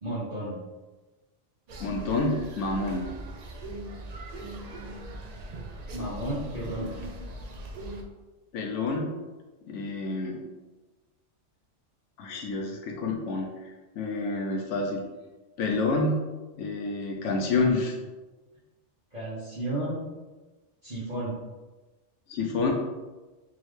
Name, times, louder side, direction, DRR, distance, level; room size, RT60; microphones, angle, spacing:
voice 1, 0.0-0.6 5.9-7.0 19.1-20.0 20.8-21.3, right 1 dB, 40° right, -12 dB, 1.4 m, -33 dB
sound 1, 1.7-8.0, right 1 dB, 80° right, 0.3 m, -39 dB
voice 2, 1.8-3.1 8.5-9.1 9.7-10.4 12.2-13.7 14.0-15.0 15.6-16.3 16.6-18.0 22.3-22.7, left 3 dB, 75° left, 1 dB, 0.9 m, -28 dB
3.6 x 3.0 x 3.2 m, 1.2 s
omnidirectional pair, 1.3 m